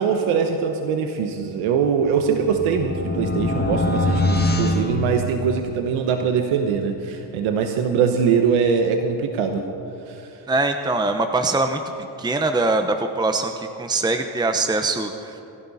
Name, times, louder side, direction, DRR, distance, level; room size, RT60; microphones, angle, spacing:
voice 1, 0.0-9.6 10.1-10.2, right 6 dB, 85° right, 5 dB, 1.2 m, -22 dB
sound 1, 1.9-5.8, left 2 dB, 20° left, 1.7 m, -24 dB
voice 2, 10.5-11.8 12.2-15.4, right 3 dB, 10° right, 6 dB, 0.9 m, -22 dB
26.0 x 12.0 x 4.2 m, 2.9 s
cardioid pair, 80°, 48 cm